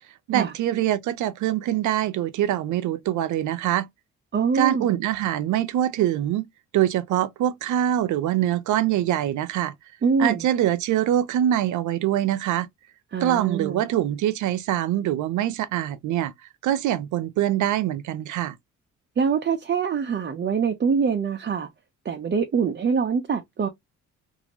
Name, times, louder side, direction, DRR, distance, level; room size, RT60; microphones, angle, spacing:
voice 1, 0.3-3.9 4.5-6.5 6.7-9.7 10.2-12.7 13.2-16.3 16.6-18.6, right 12 dB, 75° right, 0.5 m, -24 dB
voice 2, 4.3-4.9 10.0-10.5 13.1-13.9 19.2-21.7 22.0-23.7, right 6 dB, 35° right, 0.7 m, -24 dB
2.8 x 2.6 x 2.7 m
cardioid pair, 90°, 30 cm